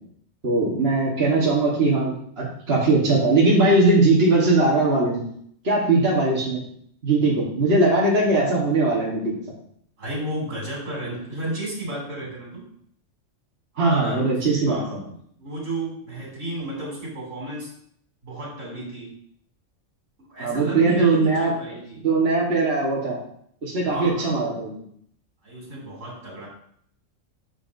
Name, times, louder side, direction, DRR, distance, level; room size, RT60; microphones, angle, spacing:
voice 1, 0.4-5.3 5.6-6.6 7.0-9.4 13.8-15.1 20.4-21.5 22.0-23.2 23.6-24.7, right 2 dB, 55° right, -5 dB, 1.8 m, -20 dB
voice 2, 10.0-12.6 13.7-14.3 14.7-15.0 15.4-17.7 18.2-19.1 20.2-22.0 23.9-24.3 25.4-26.5, right 1 dB, 75° right, -3 dB, 3.5 m, -33 dB
9.9 x 6.9 x 2.7 m, 0.64 s
omnidirectional pair, 1.3 m